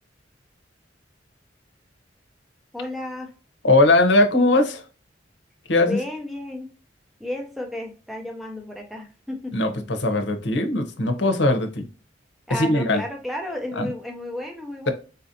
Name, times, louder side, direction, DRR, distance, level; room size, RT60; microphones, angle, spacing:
voice 1, 2.7-3.3 5.9-6.7 7.2-9.9 12.5-14.9, left 1 dB, ahead, 2 dB, 0.6 m, -33 dB
voice 2, 3.6-4.8 5.7-6.0 9.5-11.8 12.5-13.0 13.8-13.9, left 2 dB, 70° left, 6 dB, 0.8 m, -20 dB
4.1 x 2.6 x 2.7 m, 0.34 s
head